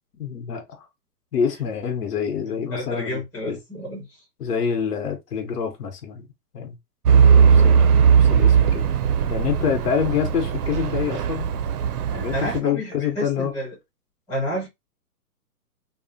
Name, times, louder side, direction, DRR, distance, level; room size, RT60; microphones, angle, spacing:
voice 1, 0.2-0.9 1.3-3.6 4.4-6.3 6.5-6.8 7.3-8.9 9.3-11.5 12.1-13.5, left 7 dB, 75° left, 1.0 m, -27 dB
voice 2, 2.5-4.2 7.2-7.9 12.3-13.8 14.3-14.7, left 1 dB, 5° left, 0.9 m, -30 dB
Truck / Idling, 7.1-12.6, right 7 dB, 75° right, 0.6 m, -18 dB
2.9 x 2.1 x 2.6 m
hypercardioid pair, 160°, 47 cm